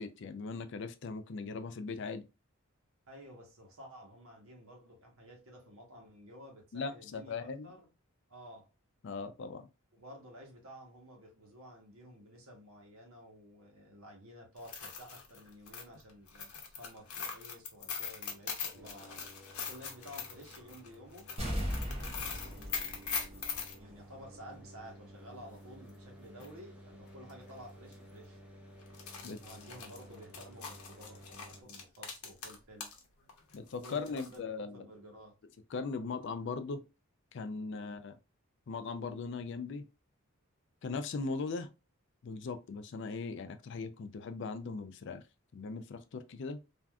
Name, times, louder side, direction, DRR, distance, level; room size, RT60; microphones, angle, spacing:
voice 1, 0.0-2.3 6.7-7.7 9.0-9.7 29.2-29.4 33.5-34.8 35.7-36.8 37.3-38.2 38.7-39.9 40.8-41.7 42.2-45.2 45.5-46.6, left 4 dB, 55° left, 0.4 m, -39 dB
voice 2, 3.1-7.9 8.3-8.7 9.9-19.2 19.7-21.3 21.9-22.8 23.2-28.4 29.4-32.9 33.8-35.4 37.7-38.0, equal, 70° right, 1.1 m, -53 dB
sound 1, 14.6-23.8 25.9-26.0 26.4-26.5 27.3-27.5 27.8-27.9 28.8-33.0 33.3-34.4, left 6 dB, 85° left, 0.8 m, -42 dB
sound 2, 18.7-31.6, equal, 5° right, 0.5 m, -54 dB
sound 3, 21.4-24.0 24.3-24.4, equal, 30° right, 1.1 m, -38 dB
3.4 x 2.6 x 2.3 m
head